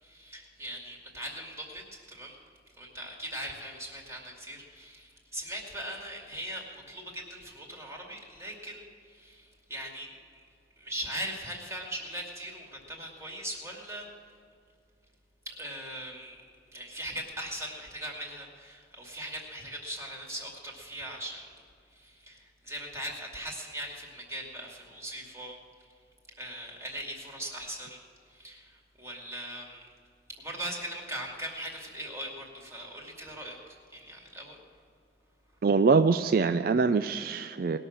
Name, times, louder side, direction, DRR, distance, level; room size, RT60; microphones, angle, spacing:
voice 1, 0.0-2.4 2.8-10.2 10.8-14.1 15.5-16.4 16.7-21.4 21.9-25.6 26.4-29.9 30.4-34.6, right 1 dB, 15° right, -1 dB, 2.4 m, -40 dB
voice 2, 35.6-37.8, right 4 dB, 55° right, 10 dB, 0.4 m, -24 dB
19.5 x 6.5 x 7.4 m, 2.3 s
head